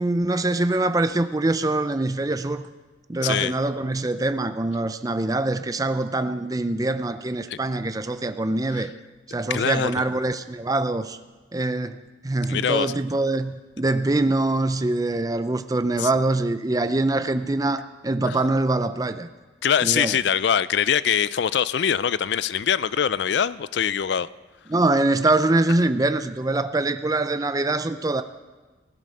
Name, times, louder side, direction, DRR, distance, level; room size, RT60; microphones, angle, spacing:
voice 1, 0.0-2.6 3.1-8.9 9.3-11.2 11.5-19.3 19.8-20.2 24.7-28.2, right 2 dB, 20° right, 10 dB, 0.5 m, -24 dB
voice 2, 3.2-3.5 7.5-7.6 8.7-8.9 9.5-9.9 12.5-12.9 16.0-16.1 18.3-18.4 19.6-24.3, left 8 dB, 65° left, 18 dB, 0.4 m, -23 dB
16.0 x 11.0 x 6.5 m, 1.3 s
head